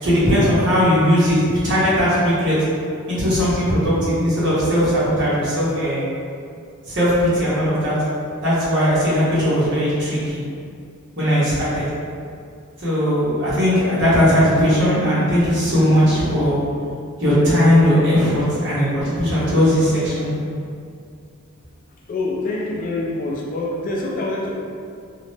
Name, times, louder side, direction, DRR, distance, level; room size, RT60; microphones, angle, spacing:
voice 1, 0.0-2.6 3.1-6.1 6.9-8.0 8.4-10.4 11.2-11.9 12.8-16.6 17.2-20.3, equal, 55° right, -10 dB, 1.1 m, -18 dB
voice 2, 22.1-24.6, left 2 dB, 40° left, -2 dB, 0.3 m, -25 dB
2.7 x 2.0 x 3.2 m, 2.3 s
head